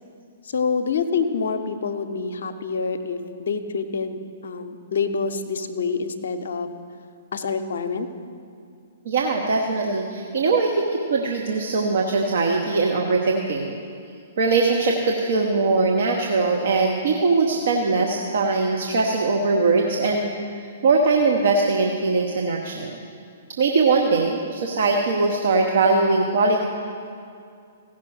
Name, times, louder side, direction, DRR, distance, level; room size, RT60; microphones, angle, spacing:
voice 1, 0.4-6.7 7.3-8.1, left 5 dB, 60° left, 8 dB, 0.7 m, -26 dB
voice 2, 9.0-13.8 14.4-20.3 20.8-23.0 23.6-26.6, right 3 dB, 55° right, 0 dB, 0.9 m, -21 dB
15.5 x 6.0 x 6.2 m, 2.4 s
figure-of-eight pair, 115°, 0 cm